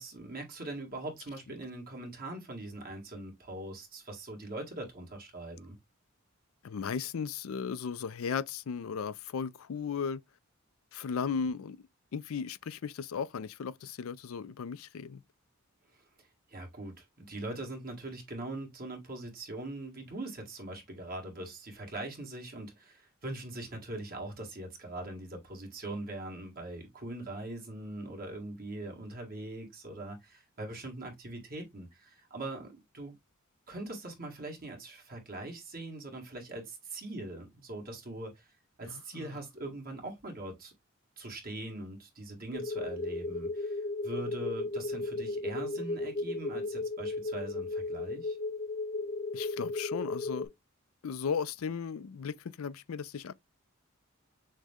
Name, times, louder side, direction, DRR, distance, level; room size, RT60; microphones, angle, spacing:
voice 1, 0.0-5.8 15.9-16.0 16.5-33.1 33.7-38.5 38.8-40.7 41.2-48.4, right 2 dB, 45° right, 1.8 m, -42 dB
voice 2, 6.6-10.2 10.9-11.8 12.1-15.2 38.8-39.4 49.3-50.5 51.0-53.3, left 6 dB, 85° left, 0.4 m, -36 dB
sound 1, 42.5-50.5, left 2 dB, 35° left, 0.5 m, -35 dB
6.3 x 2.2 x 3.6 m
head